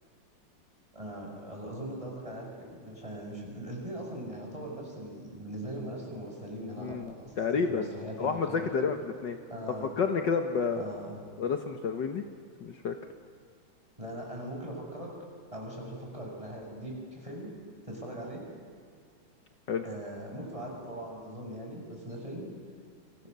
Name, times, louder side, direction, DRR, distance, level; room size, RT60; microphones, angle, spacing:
voice 1, 0.9-8.8 9.5-9.9 10.7-11.2 14.0-15.1 15.5-17.5 17.8-18.4 19.8-22.4, right 1 dB, 15° right, -1 dB, 6.8 m, -40 dB
voice 2, 6.8-7.9 8.2-9.4 9.8-10.9 11.4-12.2 12.6-12.9 19.7-19.9, left 5 dB, 60° left, 5 dB, 1.8 m, -30 dB
29.5 x 27.0 x 6.8 m, 2.1 s
omnidirectional pair, 2.3 m